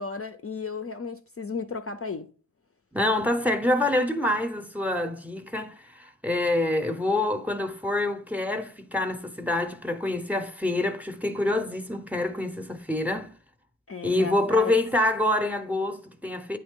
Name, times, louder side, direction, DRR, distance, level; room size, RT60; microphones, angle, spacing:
voice 1, 0.0-2.3 13.9-14.7, left 4 dB, 40° left, 0.5 m, -34 dB
voice 2, 2.9-13.3 14.0-16.6, left 1 dB, 5° right, 0.7 m, -26 dB
8.8 x 3.2 x 3.6 m
wide cardioid pair, 60°, 35 cm